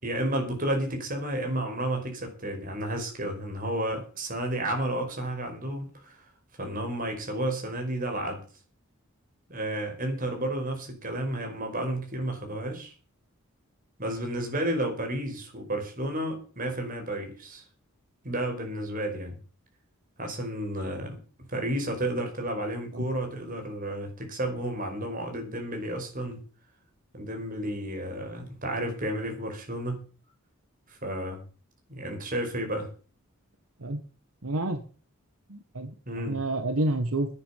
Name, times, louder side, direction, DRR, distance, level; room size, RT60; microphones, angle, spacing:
voice 1, 0.0-6.3 6.6-8.4 9.5-12.9 14.0-17.6 18.2-19.4 20.2-21.2 21.5-26.4 27.1-30.0 30.9-31.4 31.9-32.9 36.0-36.4, right 1 dB, 40° right, 3 dB, 5.1 m, -32 dB
voice 2, 34.4-34.8 35.5-35.9 36.3-37.3, right 2 dB, 85° right, 7 dB, 1.7 m, -28 dB
11.5 x 9.8 x 7.4 m, 0.37 s
head